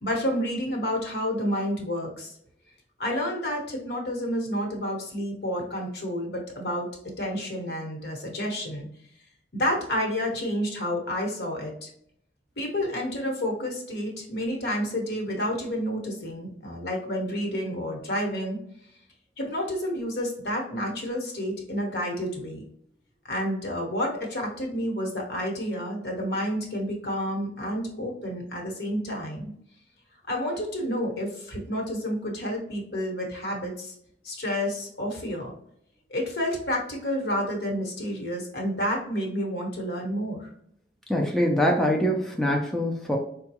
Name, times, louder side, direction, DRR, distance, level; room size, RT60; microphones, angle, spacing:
voice 1, 0.0-2.4 3.0-6.9 7.2-8.9 9.5-11.9 12.6-18.6 19.4-22.6 23.3-29.5 30.3-33.9 34.2-35.5 36.1-40.5, equal, 65° left, 0 dB, 1.1 m, -30 dB
voice 2, 41.1-43.2, equal, ahead, 0 dB, 0.4 m, -24 dB
4.6 x 2.2 x 2.8 m, 0.69 s
head